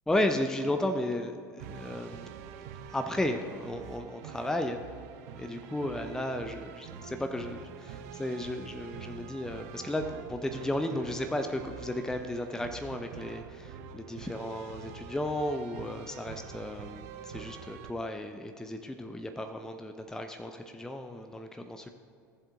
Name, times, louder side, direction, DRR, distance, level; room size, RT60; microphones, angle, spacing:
voice 1, 0.1-2.3 2.6-4.8 5.3-21.9, left 1 dB, 5° left, 6 dB, 0.5 m, -34 dB
sound 1, 1.6-17.9, right 7 dB, 55° right, 0.5 m, -45 dB
15.0 x 7.4 x 2.5 m, 2.3 s
figure-of-eight pair, 70°, 10 cm